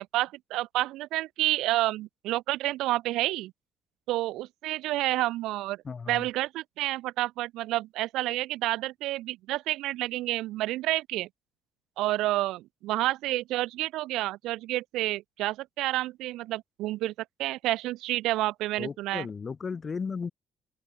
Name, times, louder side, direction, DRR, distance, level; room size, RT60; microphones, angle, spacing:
voice 1, 0.0-3.5 4.1-5.8 6.1-11.3 12.0-17.1 17.4-19.3, right 16 dB, 80° right, 0.5 m, -29 dB
voice 2, 5.8-6.3 18.8-20.3, left 5 dB, 30° left, 1.9 m, -35 dB
cardioid pair, 110°, 0 cm